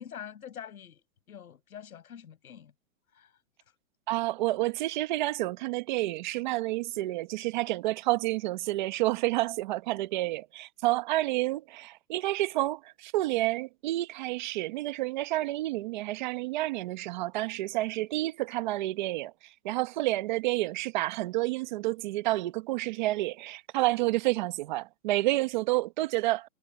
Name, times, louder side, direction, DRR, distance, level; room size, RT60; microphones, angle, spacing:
voice 1, 0.0-2.7 3.1-3.3, left 9 dB, 90° left, 7.3 m, -45 dB
voice 2, 4.1-19.3 19.6-26.5, right 18 dB, 35° right, 1.2 m, -29 dB
hypercardioid pair, 165°, 42 cm